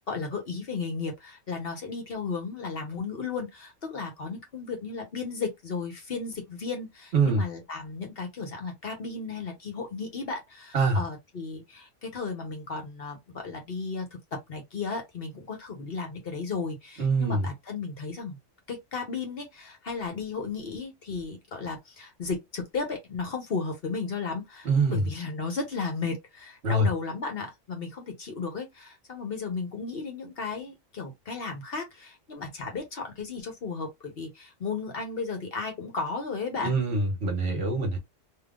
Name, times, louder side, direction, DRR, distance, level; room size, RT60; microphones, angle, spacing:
voice 1, 0.1-14.1 14.5-18.4 18.7-36.8, left 4 dB, 55° left, 1.1 m, -34 dB
voice 2, 7.1-7.4 10.7-11.0 17.0-17.4 24.6-25.1 26.6-26.9 36.6-38.0, right 3 dB, 60° right, 1.4 m, -24 dB
3.5 x 2.6 x 2.3 m
omnidirectional pair, 1.3 m